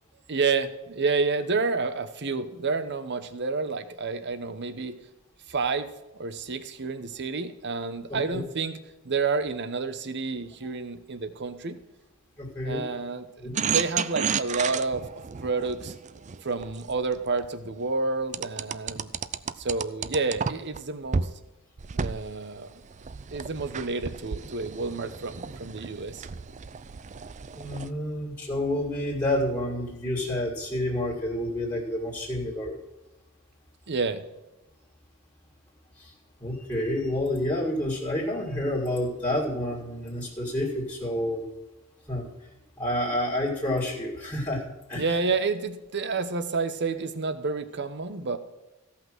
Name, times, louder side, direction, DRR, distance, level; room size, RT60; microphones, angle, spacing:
voice 1, 0.3-4.9 5.5-5.9 6.2-8.8 9.0-11.8 12.6-15.1 15.4-15.9 16.4-19.1 19.6-21.3 21.9-22.7 23.3-26.3 33.9-34.2 44.9-48.4, right 4 dB, 55° right, 11 dB, 1.0 m, -29 dB
voice 2, 8.1-8.4 12.4-12.8 13.4-13.5 27.5-32.8 36.0-36.1 36.4-41.5 42.1-42.3 42.8-45.1, left 1 dB, 15° left, -5 dB, 2.2 m, -29 dB
sound 1, 13.6-17.5 18.3-20.8 21.1-21.3 21.8-27.9, right 6 dB, 35° right, 0.4 m, -32 dB
15.5 x 5.8 x 6.1 m, 1.0 s
head